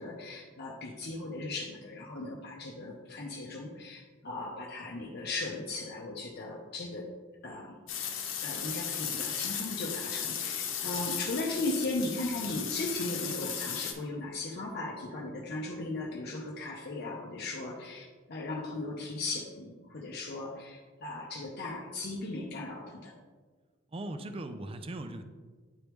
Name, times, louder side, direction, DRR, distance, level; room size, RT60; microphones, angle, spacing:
voice 1, 0.0-7.1 7.4-7.7 8.4-23.1, left 2 dB, 55° left, -2 dB, 0.7 m, -37 dB
sound 1, 7.9-13.9, left 8 dB, 80° left, 0.9 m, -36 dB
voice 2, 23.9-25.2, right 1 dB, 30° right, 8 dB, 0.4 m, -39 dB
9.7 x 3.4 x 3.0 m, 1.4 s
head